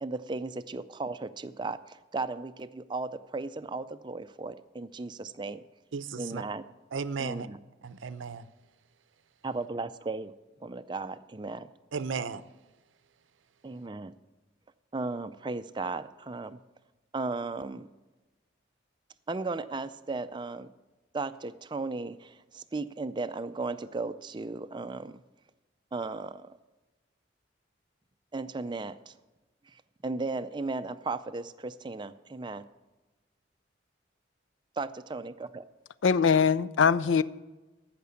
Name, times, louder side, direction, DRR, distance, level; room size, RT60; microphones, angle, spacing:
voice 1, 0.0-5.6 6.2-6.6 7.2-7.6 9.4-10.3 10.6-11.7 13.6-14.2 14.9-16.6 17.1-17.9 19.3-20.7 21.1-25.2 25.9-26.5 28.3-29.1 29.7-32.6 34.8-35.6, right 3 dB, 25° right, 0.4 m, -36 dB
voice 2, 5.9-6.4 6.9-7.5 7.8-8.5 11.9-12.4, right 5 dB, 85° right, 0.6 m, -34 dB
voice 3, 36.0-37.2, left 6 dB, 85° left, 0.4 m, -22 dB
15.0 x 6.0 x 7.0 m
head